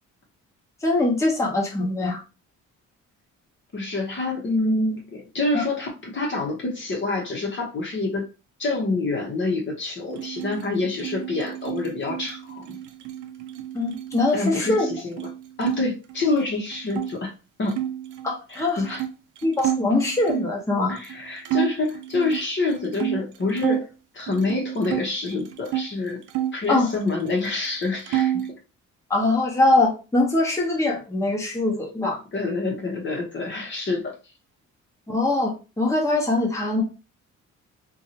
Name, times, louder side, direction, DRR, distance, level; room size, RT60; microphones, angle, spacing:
voice 1, 0.8-2.2 5.5-5.6 13.7-14.9 18.2-18.8 19.4-20.9 26.7-26.9 29.1-32.2 35.1-36.8, left 2 dB, 10° left, -2 dB, 0.9 m, -22 dB
voice 2, 3.7-8.2 8.6-12.7 14.3-15.2 15.6-17.3 17.6-17.8 18.5-19.0 20.9-23.9 24.1-26.2 26.5-28.3 32.3-34.2, left 3 dB, 40° left, 0 dB, 0.9 m, -27 dB
sound 1, 10.1-15.8 16.1-17.1 17.7-20.6 21.0-21.2 21.4-23.9 24.3-25.9 26.3-27.4 27.6-28.5, right 12 dB, 80° right, 0.5 m, -30 dB
2.7 x 2.3 x 2.8 m, 0.31 s
cardioid pair, 90°, 30 cm